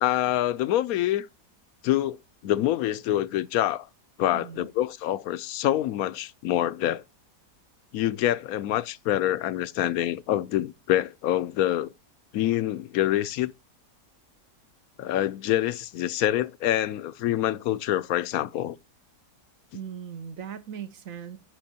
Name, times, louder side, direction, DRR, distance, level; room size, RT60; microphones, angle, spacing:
voice 1, 0.0-1.3 1.8-2.2 2.4-3.9 4.2-7.0 7.9-11.9 12.3-13.5 15.0-18.8, left 13 dB, 70° left, 1.0 m, -26 dB
voice 2, 4.3-4.7 19.7-21.4, right 8 dB, 55° right, 1.5 m, -39 dB
14.5 x 6.1 x 2.8 m
omnidirectional pair, 1.7 m